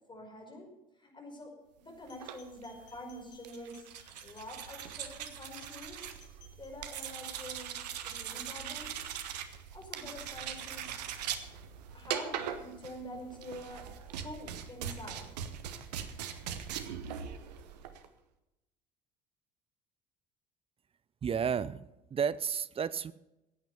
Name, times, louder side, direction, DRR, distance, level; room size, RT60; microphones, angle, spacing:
voice 1, 0.1-0.7 1.0-3.9 4.2-6.2 6.6-7.8 8.0-9.2 9.7-11.0 11.9-14.0 14.2-15.4, left 1 dB, 20° left, 1 dB, 5.4 m, -46 dB
sound 1, 2.1-7.4, left 6 dB, 80° left, 2.4 m, -61 dB
sound 2, 2.1-18.1, right 9 dB, 75° right, 1.1 m, -41 dB
voice 2, 21.2-21.8 22.1-23.1, right 7 dB, 25° right, 17 dB, 0.6 m, -31 dB
16.0 x 9.1 x 6.9 m, 0.94 s
figure-of-eight pair, 60°, 21 cm